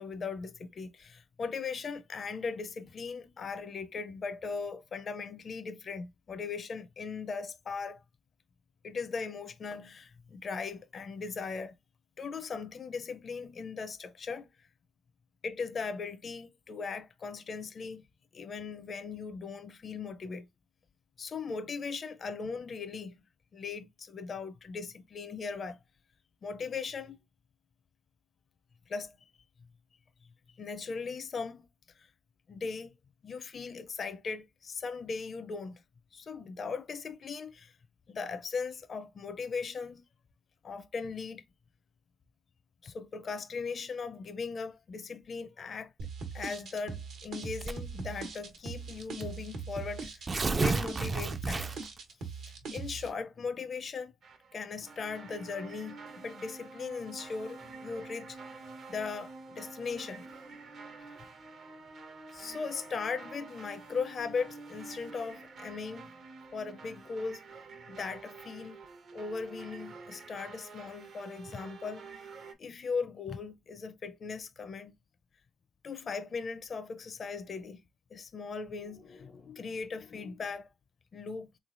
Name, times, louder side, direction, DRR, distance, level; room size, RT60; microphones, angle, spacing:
voice 1, 0.0-8.0 8.8-11.7 12.2-14.7 15.4-18.1 18.3-20.5 21.2-23.2 23.5-25.8 26.4-27.2 28.9-29.3 30.6-31.7 32.0-32.1 32.5-32.9 33.2-35.8 36.1-37.8 38.1-40.0 40.6-41.4 42.8-45.9 46.3-50.2 50.6-51.7 52.7-54.1 54.5-58.4 58.9-60.3 61.0-61.1 62.3-66.2 66.5-67.4 67.9-68.8 69.1-72.0 72.6-74.9 75.8-77.8 78.1-80.7 81.1-81.5, left 5 dB, 45° left, 0.4 m, -38 dB
sound 1, 46.0-53.1, right 5 dB, 80° right, 1.1 m, -41 dB
Tearing, 47.6-48.0 48.9-49.0 49.3-49.4 50.0-52.0, right 3 dB, 30° right, 0.3 m, -31 dB
sound 2, 54.2-72.5, right 4 dB, 60° right, 0.7 m, -48 dB
3.5 x 3.1 x 2.5 m
cardioid pair, 90°, 0 cm